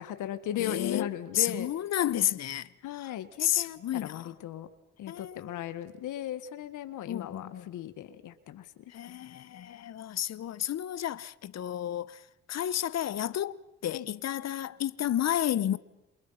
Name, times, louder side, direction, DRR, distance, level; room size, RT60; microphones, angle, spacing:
voice 1, 0.0-1.7 2.8-4.7 5.0-8.9 13.9-14.1, left 11 dB, 80° left, 1.7 m, -37 dB
voice 2, 0.6-1.1 1.3-3.1 3.4-4.3 5.1-5.6 7.1-7.7 8.9-15.8, left 11 dB, 60° left, 1.1 m, -31 dB
29.0 x 27.5 x 5.8 m
cardioid pair, 90°, 30 cm